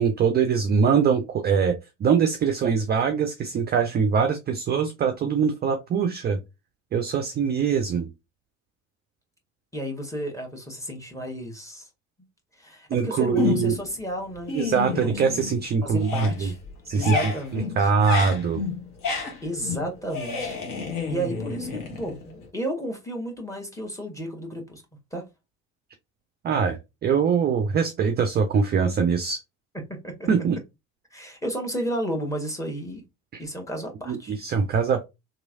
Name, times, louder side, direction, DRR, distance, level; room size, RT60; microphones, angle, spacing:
voice 1, 0.0-6.4 6.9-8.1 12.9-13.8 14.5-16.5 16.9-18.6 26.4-29.4 30.3-30.6 33.3-33.4 34.1-35.0, right 6 dB, 25° right, 0.5 m, -23 dB
voice 2, 9.7-11.9 12.5-15.2 15.8-16.6 16.9-17.9 19.4-20.6 21.1-24.8 25.1-25.2 29.9-30.3 31.1-33.0 33.4-34.3, right 1 dB, 5° left, 1.2 m, -33 dB
sound 1, 13.4-13.9 14.3-15.7 15.9-22.5, left 4 dB, 50° left, 1.2 m, -30 dB
3.0 x 2.5 x 2.5 m
figure-of-eight pair, 60°, 42 cm